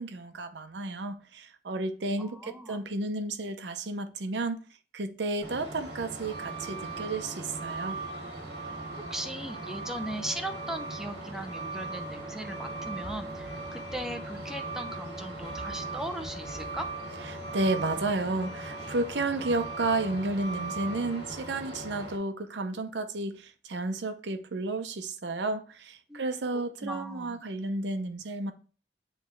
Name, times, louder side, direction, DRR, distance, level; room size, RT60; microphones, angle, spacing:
voice 1, 0.0-4.6 4.9-8.0 17.5-28.5, right 2 dB, 85° right, 0.7 m, -32 dB
voice 2, 2.2-2.8 9.1-16.9 26.1-26.2 26.5-27.4, right 1 dB, 5° right, 0.6 m, -38 dB
Truck, 5.4-22.2, right 2 dB, 65° right, 2.0 m, -38 dB
9.1 x 3.2 x 3.2 m
head